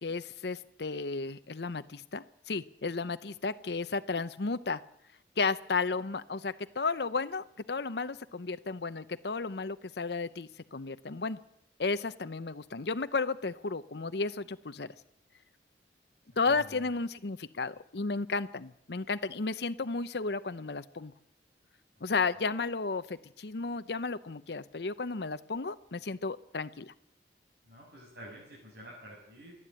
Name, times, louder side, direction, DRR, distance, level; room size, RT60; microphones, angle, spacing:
voice 1, 0.0-4.8 5.4-11.4 11.8-14.9 16.4-21.1 22.0-26.9, left 4 dB, 65° left, 11 dB, 0.7 m, -33 dB
voice 2, 16.5-17.0 22.0-22.1 27.6-29.5, equal, 60° right, -4 dB, 7.2 m, -49 dB
28.5 x 11.0 x 8.8 m, 0.77 s
head